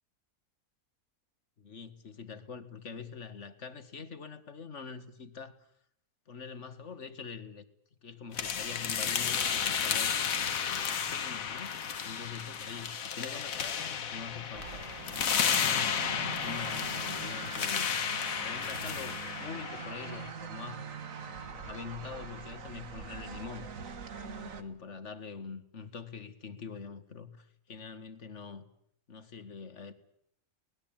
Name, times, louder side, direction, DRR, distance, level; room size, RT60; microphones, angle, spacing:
voice 1, 1.6-5.7 6.3-7.6 8.0-10.1 10.6-17.9 18.4-23.7 24.2-28.7 29.1-29.9, left 5 dB, 55° left, 1.9 m, -45 dB
sound 1, 8.3-20.3, left 7 dB, 70° left, 1.6 m, -33 dB
sound 2, 14.5-24.6, right 6 dB, 65° right, 1.9 m, -43 dB
23.5 x 19.5 x 8.9 m
omnidirectional pair, 1.5 m